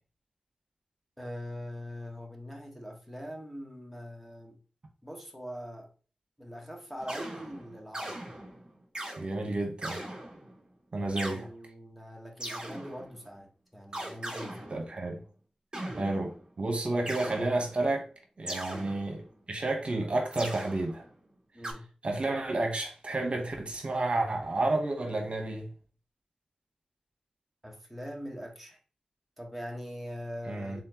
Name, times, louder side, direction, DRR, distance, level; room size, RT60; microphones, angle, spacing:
voice 1, 1.2-4.6 5.0-5.9 6.4-8.2 11.1-14.8 18.7-19.0 21.5-21.9 27.6-28.8 29.4-30.8, equal, ahead, 1.2 m, -42 dB
sound 1, 7.0-9.2 9.8-10.6 11.2-11.4 12.4-13.2 13.9-15.1 15.7-16.5 17.1-17.9 18.5-19.4 20.3-21.2 21.6-21.7, right 1 dB, 35° right, 2.4 m, -40 dB
voice 2, 9.2-10.1 10.9-11.5 14.7-15.2 16.0-18.1 18.4-21.1 22.0-25.7 30.5-30.8, right 2 dB, 55° right, 1.0 m, -31 dB
4.2 x 3.8 x 2.9 m
wide cardioid pair, 70°, 2 cm